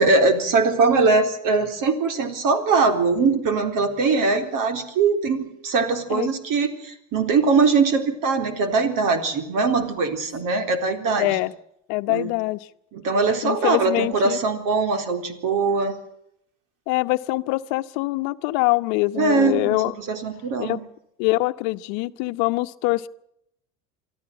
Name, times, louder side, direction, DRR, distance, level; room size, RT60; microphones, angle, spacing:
voice 1, 0.0-11.3 12.1-12.3 12.9-15.9 19.2-19.8 20.1-20.8, right 4 dB, 55° right, 8 dB, 4.0 m, -21 dB
voice 2, 11.2-11.5 11.9-12.6 13.4-14.4 16.9-19.9 20.6-20.8 21.2-23.1, left 21 dB, 70° left, 12 dB, 1.0 m, -24 dB
24.5 x 13.5 x 9.0 m, 0.76 s
supercardioid pair, 95°, 39 cm